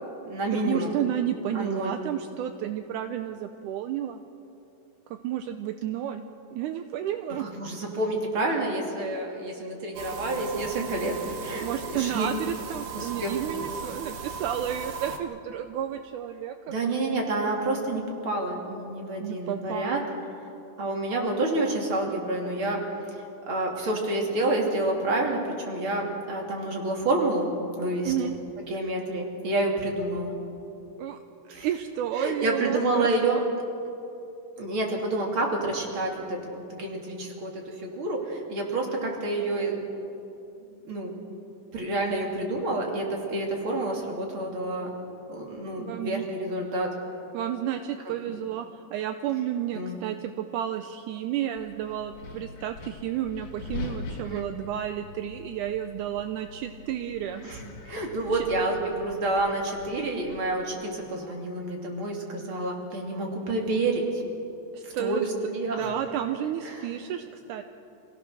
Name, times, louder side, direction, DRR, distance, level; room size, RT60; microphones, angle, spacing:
voice 1, 0.0-0.9 1.5-1.9 7.4-11.7 11.9-12.3 12.9-13.4 16.7-20.0 20.8-22.8 23.1-28.3 28.7-30.3 31.5-31.7 32.1-33.4 34.6-39.8 40.7-41.2 41.7-44.9 45.3-46.9 48.3-48.4 49.7-50.0 54.2-54.5 57.4-64.2 64.8-65.9 66.6-66.9, right 2 dB, 40° right, 0 dB, 3.2 m, -29 dB
voice 2, 0.5-4.2 5.1-6.3 6.5-7.5 11.6-16.7 19.2-20.0 28.0-28.4 31.0-31.2 31.5-33.4 45.8-46.2 47.3-57.5 58.3-58.5 64.7-65.3 65.7-67.6, right 10 dB, 80° right, 8 dB, 2.0 m, -31 dB
sound 1, 9.9-15.2, right 5 dB, 55° right, 1.5 m, -37 dB
Wind, 51.6-61.1, left 3 dB, 65° left, 2.9 m, -43 dB
27.0 x 17.0 x 6.4 m, 2.8 s
omnidirectional pair, 3.9 m